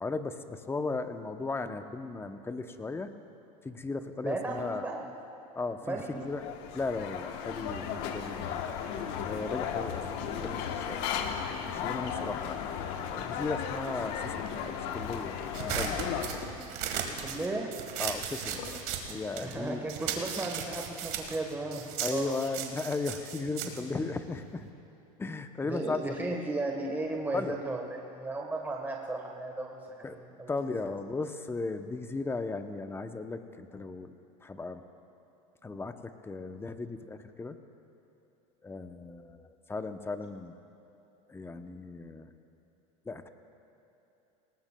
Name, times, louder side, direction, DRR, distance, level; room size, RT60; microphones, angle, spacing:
voice 1, 0.0-3.1 3.6-4.8 5.5-8.6 9.2-11.2 11.6-12.6 13.1-15.3 15.7-16.0 18.0-18.7 19.1-19.9 22.0-24.7 25.2-26.4 27.3-27.6 30.0-30.2 30.5-34.1 34.4-34.8 35.6-37.6 38.6-40.6 41.3-42.3 43.1-43.3, left 3 dB, 15° left, 8 dB, 0.7 m, -36 dB
voice 2, 4.2-5.1 5.9-6.1 17.0-17.7 19.4-22.3 23.6-23.7 25.6-30.5, right 2 dB, 10° right, 0 dB, 1.2 m, -35 dB
sound 1, 6.0-16.3, left 8 dB, 65° left, 1.1 m, -35 dB
sound 2, 13.8-17.7 18.0-18.9, left 5 dB, 80° left, 1.3 m, -50 dB
sound 3, 15.5-19.6 19.9-24.7, right 9 dB, 60° right, 1.6 m, -36 dB
19.5 x 18.5 x 2.3 m, 2.9 s
supercardioid pair, 105°, 18 cm